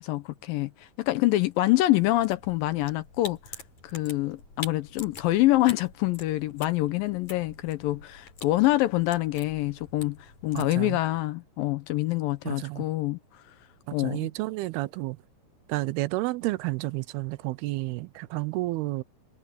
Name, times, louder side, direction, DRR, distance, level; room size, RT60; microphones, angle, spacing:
voice 1, 0.0-3.4 3.8-10.2 10.4-13.2 13.9-14.3, left 17 dB, 80° left, 2.2 m, -26 dB
sound 1, 2.0-10.7, left 4 dB, 45° left, 8.5 m, -46 dB
voice 2, 10.5-11.0 12.5-12.8 13.9-15.2 15.7-19.0, right 20 dB, 85° right, 2.6 m, -31 dB
omnidirectional pair, 4.5 m